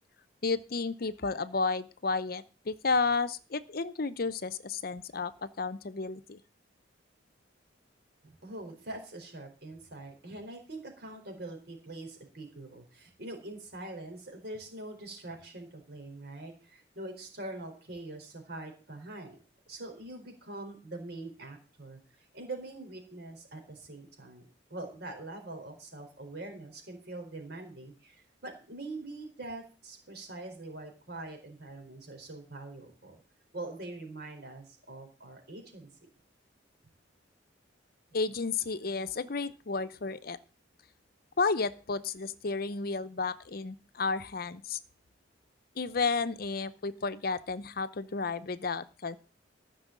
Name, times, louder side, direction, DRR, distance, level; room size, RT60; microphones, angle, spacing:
voice 1, 0.4-6.4 38.1-40.4 41.4-44.8 45.8-49.2, left 4 dB, 50° left, 13 dB, 0.7 m, -32 dB
voice 2, 8.2-19.4 19.7-24.4 24.7-33.2 33.5-36.1, right 2 dB, 60° right, 4 dB, 4.4 m, -44 dB
14.5 x 6.3 x 7.4 m, 0.37 s
head